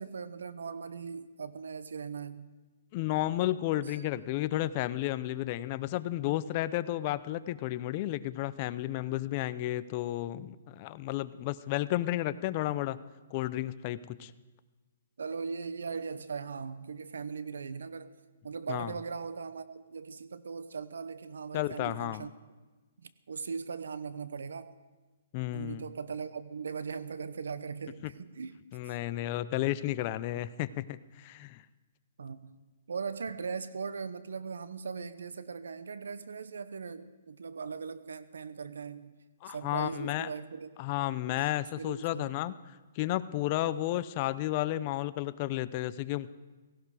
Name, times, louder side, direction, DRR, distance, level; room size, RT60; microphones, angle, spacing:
voice 1, 0.0-2.6 3.9-4.0 15.2-18.2 18.4-22.3 23.0-24.8 25.5-28.6 32.2-32.6 32.9-40.7 41.4-42.4, right 5 dB, 85° right, 14 dB, 0.9 m, -39 dB
voice 2, 2.9-13.0 13.3-14.3 18.7-18.9 21.5-22.3 25.3-25.8 28.0-28.1 28.7-31.6 39.4-40.3 40.8-42.5 43.0-46.3, left 15 dB, 35° left, 15 dB, 0.5 m, -32 dB
17.0 x 16.0 x 4.9 m, 1.3 s
hypercardioid pair, 150°, 0 cm